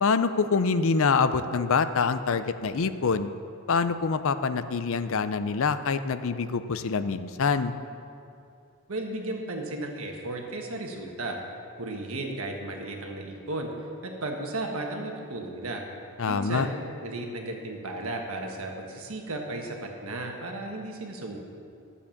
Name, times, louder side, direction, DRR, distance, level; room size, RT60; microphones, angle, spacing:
voice 1, 0.0-3.3 3.7-7.7 16.2-16.7, left 5 dB, 60° left, 12 dB, 0.5 m, -25 dB
voice 2, 8.9-11.4 11.8-13.7 14.0-15.8 16.3-16.7 17.0-21.4, right 2 dB, 65° right, 2 dB, 1.5 m, -34 dB
12.0 x 7.2 x 7.2 m, 2.5 s
head